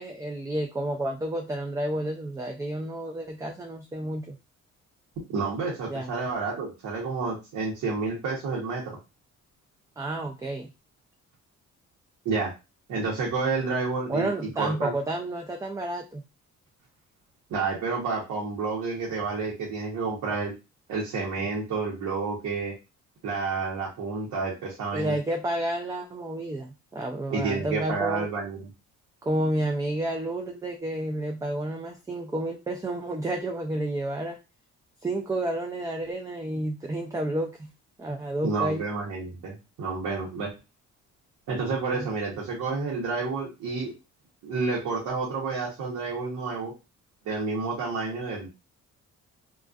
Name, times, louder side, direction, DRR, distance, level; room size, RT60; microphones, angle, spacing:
voice 1, 0.0-4.4 5.9-6.1 10.0-10.7 14.1-16.2 24.9-28.3 29.2-34.4 35.0-37.7 38.0-38.9 41.9-42.1, right 1 dB, 10° right, 3 dB, 0.3 m, -30 dB
voice 2, 5.3-8.8 12.2-12.5 12.9-14.3 14.6-14.9 17.5-20.5 20.9-22.7 23.2-25.2 27.3-28.7 38.4-40.5 41.5-43.9 44.4-46.7 47.2-48.5, right 4 dB, 75° right, -4 dB, 0.9 m, -30 dB
2.4 x 2.3 x 2.3 m, 0.27 s
cardioid pair, 90°, 30 cm